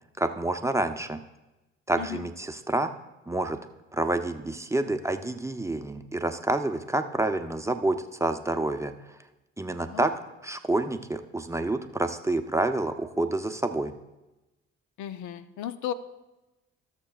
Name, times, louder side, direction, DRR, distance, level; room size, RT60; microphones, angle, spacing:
voice 1, 0.2-1.2 1.9-2.9 3.3-3.6 3.9-8.9 9.6-10.1 10.4-13.9, right 2 dB, 10° right, 7 dB, 0.6 m, -28 dB
voice 2, 15.0-15.9, left 10 dB, 70° left, 12 dB, 0.6 m, -35 dB
18.0 x 6.7 x 2.4 m, 1.0 s
supercardioid pair, 60°, 31 cm